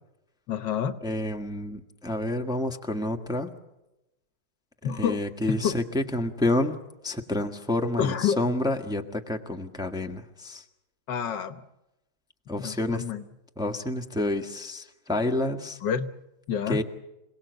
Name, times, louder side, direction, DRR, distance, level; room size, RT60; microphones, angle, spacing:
voice 1, 0.5-1.0 4.8-5.8 8.0-8.4 11.1-11.6 12.6-13.2 15.8-16.1 16.5-16.8, left 8 dB, 65° left, 12 dB, 1.6 m, -28 dB
voice 2, 1.0-3.5 5.0-6.7 7.0-10.6 12.5-13.0 13.6-15.8 16.7-16.8, left 1 dB, ahead, 4 dB, 1.3 m, -29 dB
27.5 x 18.5 x 8.1 m, 0.94 s
omnidirectional pair, 2.2 m